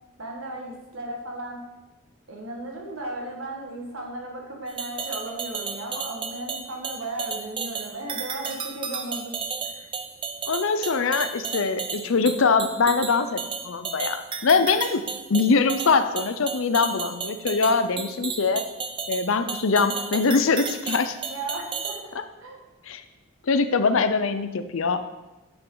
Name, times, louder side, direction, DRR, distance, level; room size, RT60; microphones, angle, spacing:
voice 1, 0.2-1.6 2.3-9.4 21.3-22.6, right 2 dB, 75° right, 0 dB, 1.8 m, -35 dB
sound 1, 4.7-22.0, right 5 dB, 25° right, 0.5 m, -33 dB
voice 2, 10.5-15.0 15.3-18.6 19.1-21.2 22.9-23.0 23.5-25.1, left 4 dB, 75° left, 10 dB, 0.6 m, -23 dB
8.7 x 7.1 x 4.0 m, 1.1 s
head